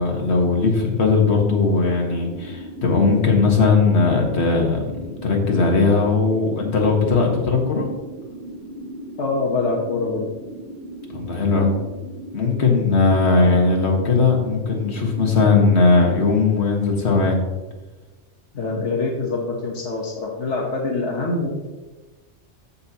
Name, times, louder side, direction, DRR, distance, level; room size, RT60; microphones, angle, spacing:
voice 1, 0.0-4.8 5.2-7.9 11.1-11.7 12.3-17.4, left 4 dB, 70° left, 0 dB, 1.8 m, -18 dB
sound 1, 1.1-15.9, right 1 dB, 80° right, 3.0 m, -37 dB
voice 2, 9.2-10.2 12.6-12.8 18.5-21.5, left 3 dB, 85° left, -1 dB, 1.4 m, -24 dB
14.0 x 5.7 x 2.9 m, 1.2 s
omnidirectional pair, 1.2 m